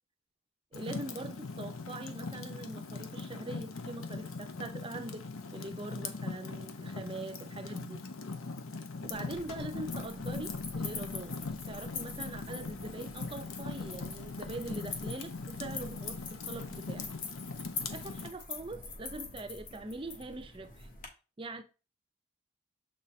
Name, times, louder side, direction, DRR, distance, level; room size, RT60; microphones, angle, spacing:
Fire, 0.7-18.3, left 3 dB, 90° left, 0.8 m, -40 dB
voice 1, 0.7-5.3 5.5-8.1 9.0-11.4 11.7-17.1 17.9-20.9 21.4-21.6, right 2 dB, 25° right, 0.5 m, -43 dB
sound 1, 9.0-21.1, left 4 dB, 40° left, 1.2 m, -45 dB
7.2 x 4.2 x 3.1 m
head